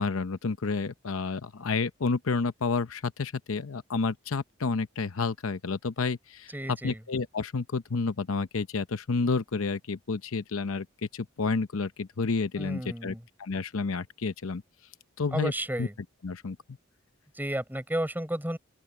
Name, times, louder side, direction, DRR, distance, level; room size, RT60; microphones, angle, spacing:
voice 1, 0.0-10.9 11.1-14.6 15.2-15.5 15.8-15.9 16.2-16.6, left 4 dB, 80° left, 0.7 m, -30 dB
voice 2, 6.5-7.0 12.6-13.2 15.3-15.9 17.3-18.6, right 1 dB, 10° right, 5.8 m, -32 dB
open air
head